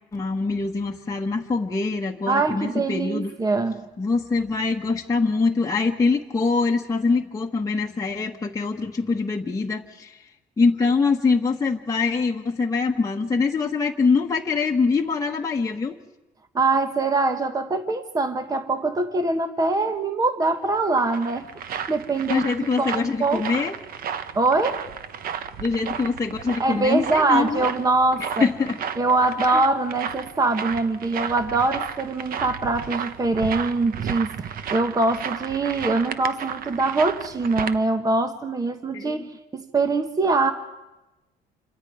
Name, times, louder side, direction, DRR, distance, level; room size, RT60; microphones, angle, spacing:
voice 1, 0.1-3.3 4.0-10.2 10.6-16.0 22.3-23.8 25.6-27.6 28.4-28.8 29.5-29.6 38.9-39.3, left 4 dB, 20° left, -1 dB, 1.3 m, -24 dB
voice 2, 2.3-3.8 16.5-22.5 22.8-23.5 24.3-24.8 26.6-28.4 29.0-39.3 39.5-40.5, right 3 dB, 20° right, 8 dB, 1.3 m, -23 dB
sound 1, 20.7-37.8, right 8 dB, 60° right, 1.0 m, -33 dB
27.5 x 25.0 x 4.9 m, 1.0 s
cardioid pair, 110°, 17 cm